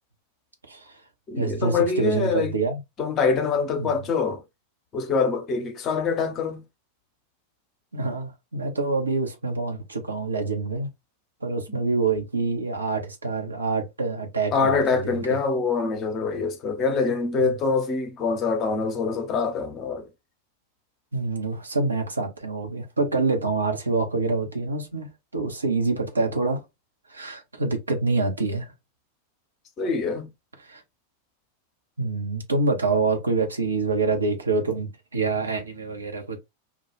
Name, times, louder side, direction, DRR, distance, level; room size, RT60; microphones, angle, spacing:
voice 1, 0.7-1.0 1.4-2.8 3.8-4.1 7.9-10.9 11.4-15.4 17.4-17.6 21.1-26.6 27.1-28.7 30.6-30.8 32.0-36.4, right 3 dB, 75° right, 0.7 m, -26 dB
voice 2, 1.3-2.5 3.0-4.4 4.9-6.6 11.7-11.8 14.5-20.1 29.8-30.3, left 4 dB, 30° left, 0.7 m, -25 dB
2.3 x 2.3 x 3.0 m
figure-of-eight pair, 90°, 0 cm